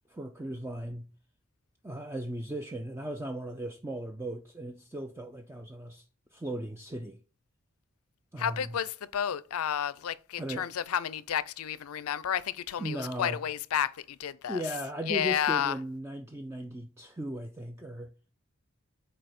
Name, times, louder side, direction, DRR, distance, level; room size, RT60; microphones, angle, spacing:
voice 1, 0.1-1.1 1.8-6.0 6.3-7.2 8.3-8.7 10.4-10.7 12.8-13.4 14.5-18.1, right 1 dB, 10° right, 0.4 m, -37 dB
voice 2, 8.4-14.8 15.0-15.8, left 9 dB, 90° left, 0.4 m, -31 dB
5.3 x 4.2 x 5.9 m
head